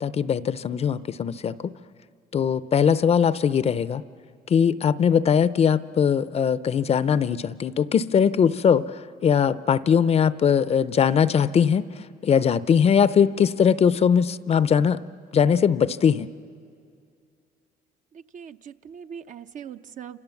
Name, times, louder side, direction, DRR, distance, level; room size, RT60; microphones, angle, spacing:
voice 1, 0.0-1.7 2.3-4.0 4.5-11.8 12.2-15.0 15.3-16.3, left 7 dB, 40° left, 15 dB, 0.6 m, -21 dB
voice 2, 18.1-20.2, right 8 dB, 50° right, 9 dB, 0.7 m, -41 dB
29.5 x 27.0 x 7.1 m, 2.3 s
cardioid pair, 110°, 17 cm